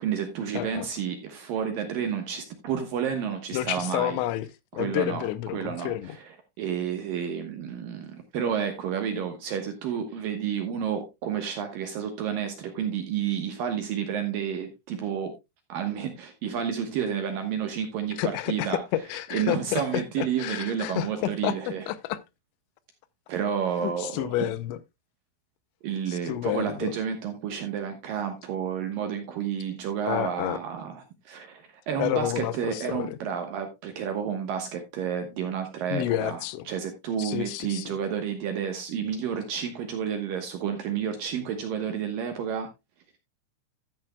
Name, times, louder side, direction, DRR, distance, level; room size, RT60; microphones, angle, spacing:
voice 1, 0.0-4.2 4.7-5.3 5.5-15.3 15.7-18.8 19.3-21.8 23.3-24.5 25.8-42.7, right 8 dB, 70° right, 2.4 m, -30 dB
voice 2, 0.5-0.9 3.5-4.5 4.7-6.2 18.2-21.5 21.9-22.2 23.8-24.8 26.1-26.9 30.0-30.6 32.0-33.2 35.9-36.7 37.2-38.0, left 13 dB, 85° left, 3.0 m, -30 dB
13.5 x 9.0 x 2.2 m
omnidirectional pair, 5.1 m